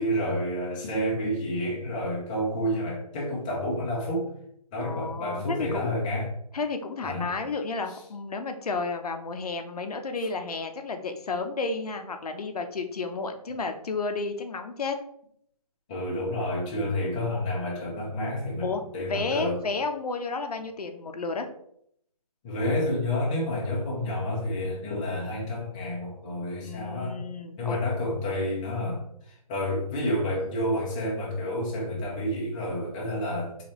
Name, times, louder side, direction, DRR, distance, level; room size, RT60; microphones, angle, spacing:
voice 1, 0.0-4.3 4.7-6.3 7.0-7.3 15.9-19.6 22.4-27.2 27.6-33.6, left 1 dB, 10° left, -4 dB, 0.5 m, -29 dB
voice 2, 4.8-5.9 6.5-14.9 16.8-16.9 18.6-21.5 26.6-27.8, left 4 dB, 70° left, 6 dB, 0.7 m, -32 dB
4.0 x 3.1 x 2.9 m, 0.70 s
hypercardioid pair, 160°, 20 cm